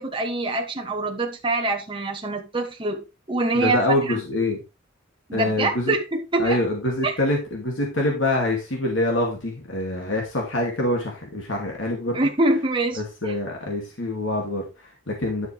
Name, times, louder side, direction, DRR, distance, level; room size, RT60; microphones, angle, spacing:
voice 1, 0.0-4.2 5.3-6.6 7.0-7.1 12.1-13.3, right 2 dB, 25° right, 2 dB, 1.2 m, -25 dB
voice 2, 3.5-4.6 5.3-5.9 6.4-12.2 13.0-15.5, left 1 dB, 70° left, 0 dB, 2.4 m, -25 dB
10.5 x 6.1 x 3.4 m, 0.28 s
head